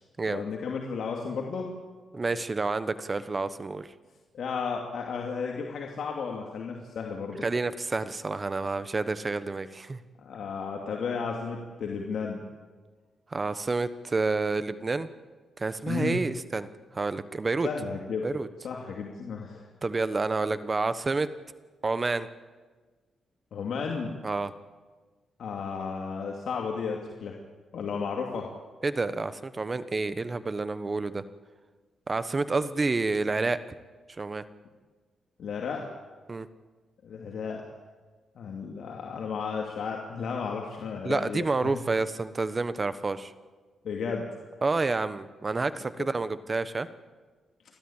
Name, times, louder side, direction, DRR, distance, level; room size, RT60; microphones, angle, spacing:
voice 1, 0.3-1.7 4.3-7.4 10.2-12.4 15.9-16.2 17.6-18.3 18.6-19.7 23.5-24.1 25.4-27.4 27.7-28.5 35.4-35.9 37.0-37.6 38.4-41.8 43.8-44.3 46.0-46.1, left 5 dB, 70° left, 0 dB, 2.6 m, -33 dB
voice 2, 2.1-3.9 7.4-10.0 13.3-15.1 15.6-16.7 16.9-17.7 18.2-18.5 19.8-21.3 21.8-22.3 24.2-24.5 28.8-31.2 32.1-33.6 34.2-34.4 36.3-36.5 41.0-43.3 44.6-46.9, right 3 dB, 30° right, 13 dB, 1.1 m, -29 dB
29.5 x 13.0 x 8.9 m, 1.4 s
cardioid pair, 100°, 0 cm